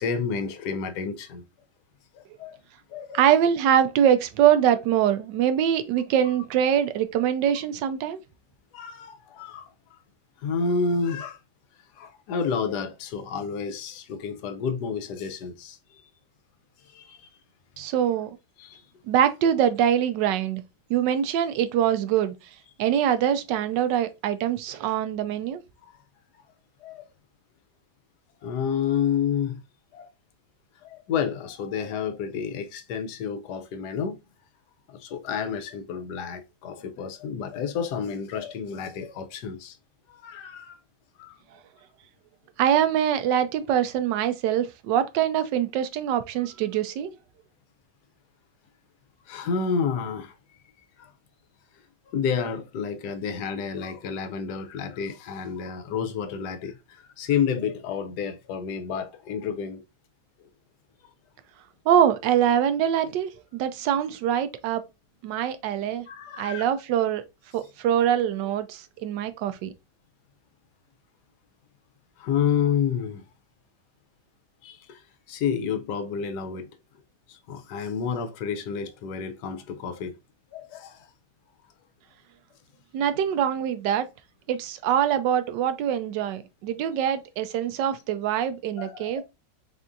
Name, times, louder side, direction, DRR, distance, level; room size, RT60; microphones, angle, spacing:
voice 1, 0.0-1.4 2.1-2.6 2.9-3.3 8.7-9.7 10.4-11.4 12.0-16.0 16.9-17.3 18.6-18.8 25.9-26.0 26.8-27.0 28.4-29.6 29.9-30.1 30.8-34.2 34.9-39.8 40.1-40.8 41.2-41.3 49.3-50.3 51.0-51.1 52.1-59.8 66.1-66.6 72.2-73.2 74.6-75.0 75.3-76.7 77.3-80.1 80.5-81.1 88.8-89.2, left 6 dB, 70° left, 1.2 m, -30 dB
voice 2, 3.1-8.2 17.8-18.4 19.1-20.6 20.9-22.3 22.8-25.6 42.6-47.1 61.9-64.8 65.2-66.1 66.4-67.2 67.5-69.7 82.9-84.1 84.5-89.2, right 9 dB, 80° right, 1.2 m, -23 dB
4.3 x 3.5 x 2.5 m
omnidirectional pair, 1.9 m